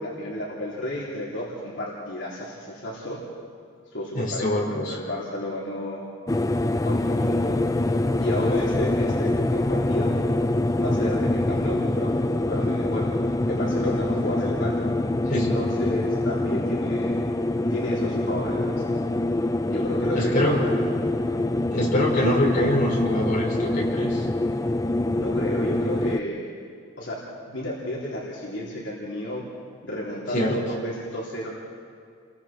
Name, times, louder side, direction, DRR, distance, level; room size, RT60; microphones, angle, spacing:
voice 1, 0.0-3.2 3.9-6.0 6.8-7.7 8.2-10.2 10.8-12.1 12.4-13.1 13.5-14.8 15.3-17.3 17.7-18.7 19.7-20.7 25.2-26.4 27.0-29.4 29.8-31.5, equal, 65° left, -6 dB, 3.8 m, -32 dB
voice 2, 4.1-4.9 15.3-15.6 20.2-20.6 21.7-24.3 30.3-30.6, left 1 dB, 40° left, -4 dB, 5.1 m, -24 dB
sound 1, 6.3-26.2, left 1 dB, 15° left, 0.4 m, -25 dB
30.0 x 22.5 x 4.5 m, 2.3 s
head